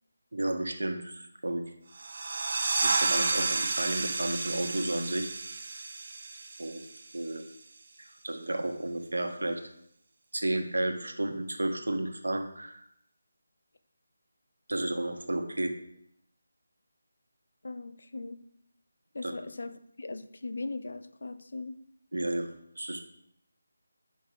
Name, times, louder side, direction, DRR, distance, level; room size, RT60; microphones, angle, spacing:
voice 1, 0.3-1.6 2.8-5.3 6.6-6.8 7.1-7.4 8.0-9.6 10.3-12.8 14.7-15.7 19.2-19.3 22.1-23.0, right 1 dB, 85° right, 5 dB, 1.2 m, -32 dB
sound 1, 1.9-7.3, right 3 dB, 50° right, 0.8 m, -31 dB
voice 2, 17.6-18.4 19.1-21.8, left 3 dB, 65° left, 11 dB, 0.6 m, -39 dB
8.4 x 5.4 x 3.8 m, 0.74 s
figure-of-eight pair, 165°, 0 cm